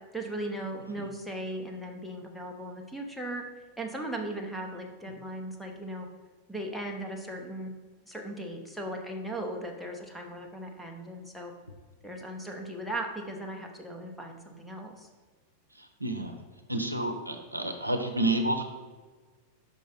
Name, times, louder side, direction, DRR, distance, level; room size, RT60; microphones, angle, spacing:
voice 1, 0.1-3.4 3.8-6.1 6.5-7.7 8.1-11.5 12.0-15.1, right 1 dB, ahead, 0 dB, 0.8 m, -37 dB
voice 2, 16.0-16.3 16.7-18.6, right 1 dB, 85° right, 4 dB, 0.6 m, -29 dB
5.3 x 5.0 x 3.9 m, 1.3 s
figure-of-eight pair, 90°, 0 cm